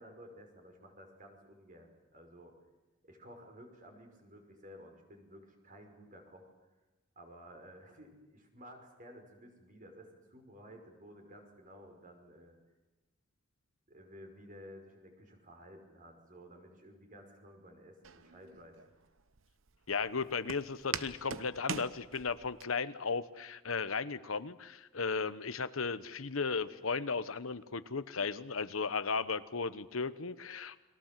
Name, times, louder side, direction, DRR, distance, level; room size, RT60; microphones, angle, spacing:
voice 1, 0.0-2.6 3.0-6.5 7.2-12.6 13.9-18.8 29.1-29.3, equal, 40° right, 4 dB, 5.5 m, -54 dB
Walk footsteps, 18.0-22.6, right 6 dB, 70° right, 1.0 m, -43 dB
voice 2, 19.9-30.8, left 4 dB, 85° left, 13 dB, 1.1 m, -35 dB
30.0 x 22.5 x 7.6 m, 1.1 s
head